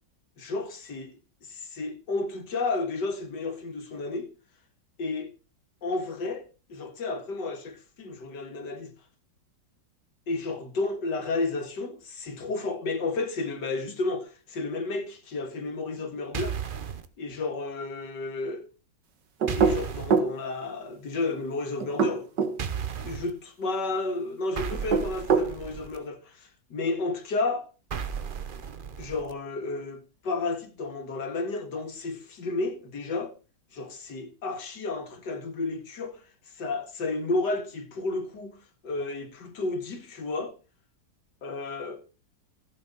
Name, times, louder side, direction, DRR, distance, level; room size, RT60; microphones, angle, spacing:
voice 1, 0.4-1.2 1.4-4.3 5.0-5.3 5.8-8.9 10.3-16.6 17.2-18.7 19.6-22.3 23.0-27.7 29.0-33.3 33.7-36.2 36.5-38.6 38.8-40.5 41.4-42.0, left 3 dB, 70° left, 2.4 m, -32 dB
sound 1, 16.3-17.1 19.5-20.2 22.6-23.3 24.6-26.0 27.9-29.3, right 7 dB, 45° right, 0.7 m, -34 dB
sound 2, 19.4-20.4 21.8-22.6 24.7-25.5, right 5 dB, 75° right, 2.0 m, -23 dB
16.0 x 7.0 x 4.1 m
omnidirectional pair, 1.9 m